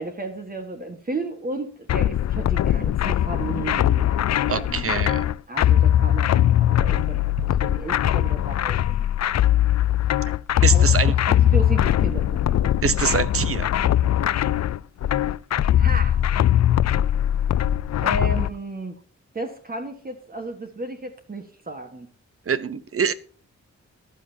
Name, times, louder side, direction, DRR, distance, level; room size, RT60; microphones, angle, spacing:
voice 1, 0.0-4.2 4.6-5.2 5.5-7.3 7.6-9.0 10.7-11.0 11.3-12.7 15.8-16.2 18.0-19.0 19.3-22.1, right 2 dB, 30° right, 1.5 m, -33 dB
sound 1, 1.9-18.5, left 11 dB, 65° left, 0.4 m, -20 dB
voice 2, 4.5-5.2 10.6-11.1 12.8-13.7 22.5-23.1, right 6 dB, 50° right, 0.9 m, -24 dB
14.5 x 12.0 x 2.8 m
wide cardioid pair, 120°, 29 cm